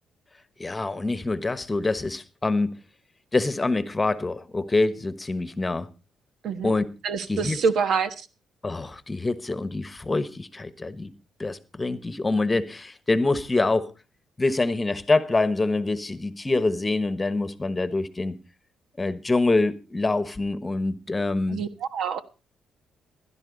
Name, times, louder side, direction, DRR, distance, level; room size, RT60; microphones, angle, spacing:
voice 1, 0.6-2.7 3.3-5.9 6.6-6.9 7.3-7.6 8.6-11.1 11.4-13.9 14.4-18.4 19.0-21.6, left 2 dB, 20° left, 1.2 m, -25 dB
voice 2, 6.4-6.8 7.0-8.3 21.5-22.2, right 5 dB, 70° right, 1.2 m, -26 dB
16.0 x 11.5 x 4.0 m
cardioid pair, 90°, 0 cm